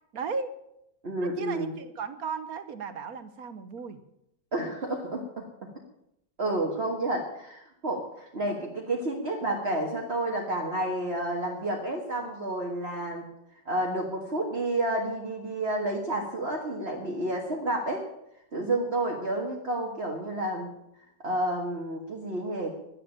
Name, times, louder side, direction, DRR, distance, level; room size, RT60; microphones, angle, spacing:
voice 1, 0.1-0.6 1.2-4.0, right 5 dB, 60° right, 11 dB, 1.4 m, -35 dB
voice 2, 1.0-1.7 4.5-5.5 6.4-13.3 13.7-18.0 18.5-20.7 21.2-22.8, right 1 dB, 35° right, -1 dB, 1.9 m, -30 dB
11.5 x 10.5 x 8.7 m, 0.80 s
omnidirectional pair, 1.9 m